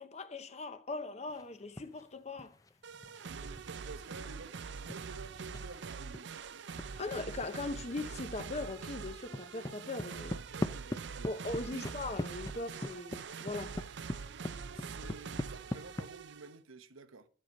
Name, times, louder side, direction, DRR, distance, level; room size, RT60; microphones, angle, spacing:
voice 1, 0.0-2.5 7.0-10.3 11.2-13.8, left 2 dB, 30° left, 0.8 m, -40 dB
sound 1, 1.3-2.1 2.4-6.9 7.4-7.5 7.8-8.4 8.6-16.1, left 1 dB, 15° left, 0.5 m, -42 dB
sound 2, 2.8-16.6, right 5 dB, 55° right, 0.5 m, -44 dB
voice 2, 3.3-6.3 10.2-11.9 14.6-17.3, right 3 dB, 80° right, 1.0 m, -51 dB
11.5 x 7.6 x 5.3 m
head